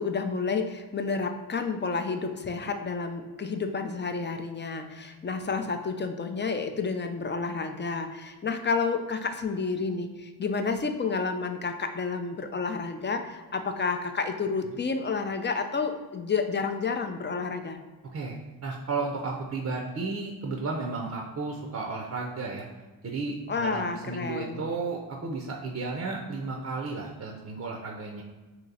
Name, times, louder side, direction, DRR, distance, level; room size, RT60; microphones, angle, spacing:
voice 1, 0.0-17.8 23.5-24.6, left 4 dB, 25° left, 7 dB, 0.4 m, -30 dB
voice 2, 18.1-22.7 23.0-28.2, right 3 dB, 35° right, 0 dB, 0.6 m, -33 dB
3.0 x 2.9 x 3.9 m, 1.3 s
supercardioid pair, 45°, 47 cm